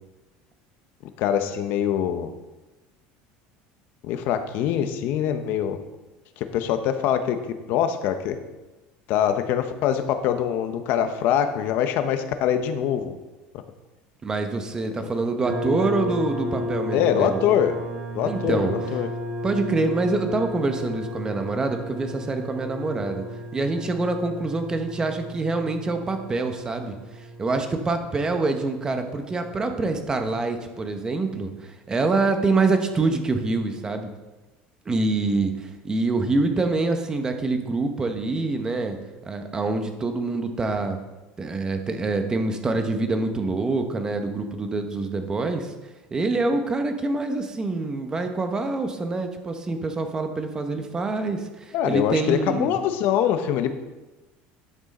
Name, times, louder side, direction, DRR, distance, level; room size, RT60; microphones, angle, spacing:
voice 1, 1.2-2.3 4.0-5.8 6.4-7.4 7.7-8.4 9.1-13.2 15.0-15.1 16.9-17.8 18.1-19.1 51.7-53.7, left 9 dB, 60° left, 9 dB, 0.8 m, -24 dB
voice 2, 14.2-17.4 18.2-18.7 19.4-23.2 23.5-26.9 27.4-34.1 34.9-39.0 39.3-41.0 41.4-45.7 46.1-52.8, right 3 dB, 20° right, 6 dB, 1.0 m, -25 dB
sound 1, 15.4-29.9, equal, 40° right, 2.0 m, -34 dB
11.0 x 6.2 x 4.2 m, 1.1 s
cardioid pair, 140°, 4 cm